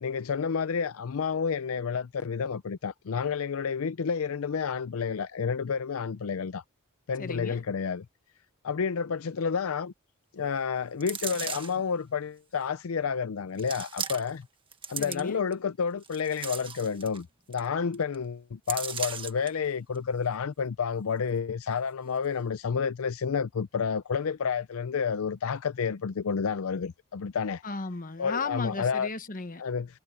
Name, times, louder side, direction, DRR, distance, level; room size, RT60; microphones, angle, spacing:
voice 1, 0.0-6.6 7.1-8.0 8.6-9.9 10.3-14.4 14.9-27.6 28.2-29.1 29.6-29.9, left 6 dB, 75° left, 0.5 m, -30 dB
voice 2, 7.2-7.6 15.0-15.4 27.6-29.6, left 3 dB, 40° left, 1.2 m, -35 dB
sound 1, 11.0-11.8 12.6-12.7 13.6-14.4 14.7-15.5 16.0-17.2 17.5-17.6 17.9-18.1 18.7-19.5 19.9-20.0, right 6 dB, 25° right, 1.5 m, -36 dB
head